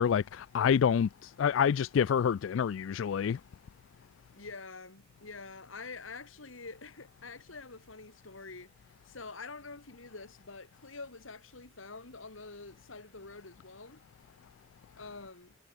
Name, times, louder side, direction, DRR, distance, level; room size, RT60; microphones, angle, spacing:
voice 1, 0.0-3.4, left 7 dB, 70° left, 0.3 m, -27 dB
voice 2, 4.4-8.7 9.0-14.0 15.0-15.6, left 3 dB, 90° left, 2.8 m, -46 dB
head